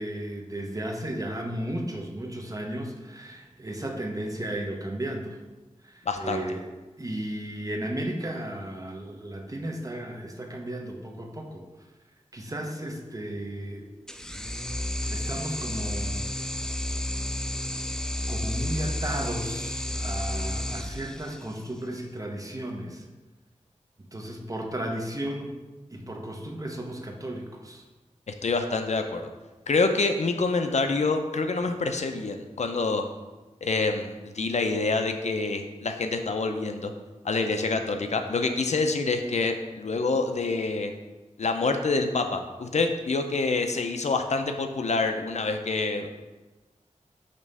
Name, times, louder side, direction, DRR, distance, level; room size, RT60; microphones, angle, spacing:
voice 1, 0.0-5.4 5.8-6.6 7.0-11.6 12.3-13.8 15.1-16.2 18.3-23.1 24.1-25.6 25.9-27.8, right 1 dB, 25° right, 2 dB, 0.8 m, -34 dB
voice 2, 6.1-6.4 28.3-29.3 29.7-33.0 33.6-36.9 37.2-40.9 41.4-46.1, left 3 dB, 60° left, 6 dB, 0.5 m, -26 dB
sound 1, 14.1-21.7, left 1 dB, 5° left, 0.3 m, -31 dB
5.2 x 3.5 x 5.3 m, 1.2 s
wide cardioid pair, 80°, 13 cm